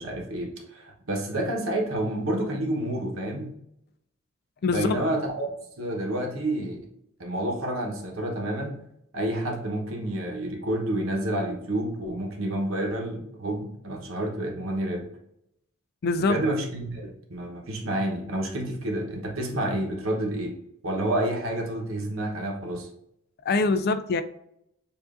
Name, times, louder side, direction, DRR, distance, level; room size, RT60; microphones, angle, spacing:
voice 1, 0.0-3.5 4.6-5.5 5.8-6.9 7.2-8.8 9.1-15.1 16.2-22.9, right 1 dB, 65° right, 1 dB, 1.0 m, -29 dB
voice 2, 4.6-5.0 16.0-16.4 23.5-24.2, left 3 dB, 45° left, 10 dB, 0.3 m, -23 dB
7.1 x 2.6 x 2.5 m, 0.77 s
head